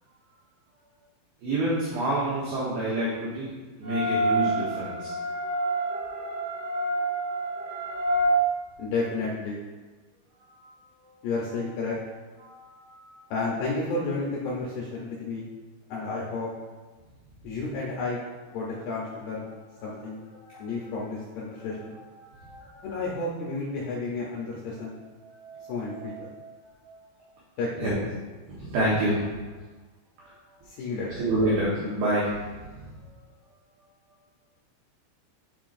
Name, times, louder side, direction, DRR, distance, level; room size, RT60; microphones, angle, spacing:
voice 1, 1.4-3.5 3.8-5.1 10.5-10.7 12.4-13.3 20.3-20.7 21.5-22.9 25.2-26.5 26.8-26.9 27.8-28.0 28.6-29.3 31.1-32.9, right 1 dB, 70° right, -7 dB, 2.6 m, -29 dB
sound 1, 3.8-8.3, right 1 dB, 50° right, 1.8 m, -28 dB
voice 2, 8.8-9.6 11.2-12.0 13.3-15.5 15.9-16.5 17.4-18.2 18.5-19.5 19.8-20.2 20.6-22.0 22.8-25.0 25.7-26.3 27.6-27.9 30.7-31.2, left 3 dB, 85° left, -4 dB, 2.3 m, -31 dB
10.5 x 5.5 x 2.6 m, 1.3 s
omnidirectional pair, 5.9 m